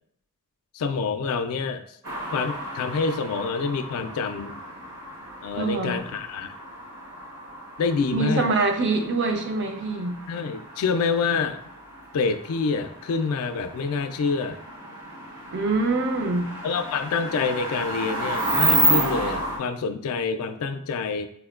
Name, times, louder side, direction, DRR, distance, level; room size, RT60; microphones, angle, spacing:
voice 1, 0.7-1.8 2.3-4.6 5.4-6.5 7.8-8.5 10.3-11.6 12.1-14.6 16.6-21.3, left 4 dB, 70° left, 8 dB, 0.3 m, -27 dB
sound 1, 2.0-19.6, right 1 dB, 80° right, 1.0 m, -31 dB
voice 2, 5.5-6.0 8.1-10.2 15.5-16.5, right 3 dB, 55° right, 5 dB, 0.5 m, -24 dB
4.3 x 2.1 x 2.3 m, 0.68 s
head